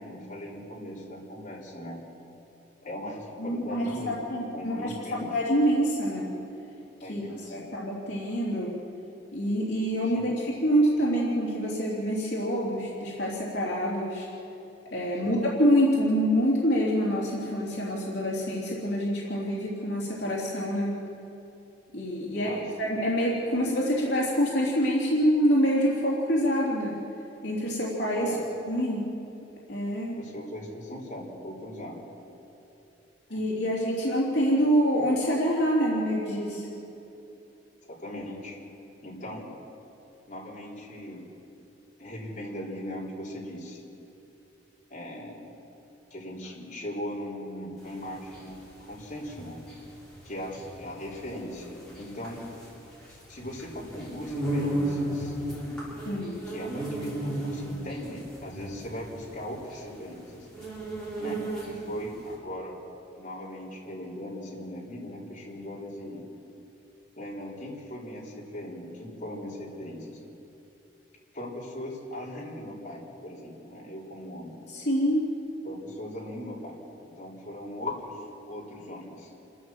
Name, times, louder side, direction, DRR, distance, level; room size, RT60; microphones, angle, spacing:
voice 1, 0.0-2.0 2.8-4.2 4.5-5.3 7.0-7.7 10.1-10.3 15.2-15.4 22.3-22.6 28.2-28.4 30.1-32.0 33.3-33.4 37.9-38.6 39.0-39.5 40.3-41.3 42.0-43.8 44.9-45.5 46.1-48.5 48.8-49.6 50.2-52.5 53.3-55.4 56.5-60.5 61.2-61.4 61.7-62.8 63.1-66.2 67.2-70.2 71.3-74.6 75.6-79.3, left 1 dB, 45° left, -5 dB, 4.2 m, -39 dB
voice 2, 3.4-6.3 7.1-8.7 9.3-14.3 14.9-20.9 21.9-27.0 27.4-28.3 28.7-29.1 29.7-30.2 33.3-36.7 56.0-56.4 74.7-75.3, equal, 65° left, -5 dB, 3.3 m, -26 dB
sound 1, 47.8-62.0, right 1 dB, 5° left, 6.6 m, -34 dB
28.5 x 12.5 x 7.4 m, 3.0 s
head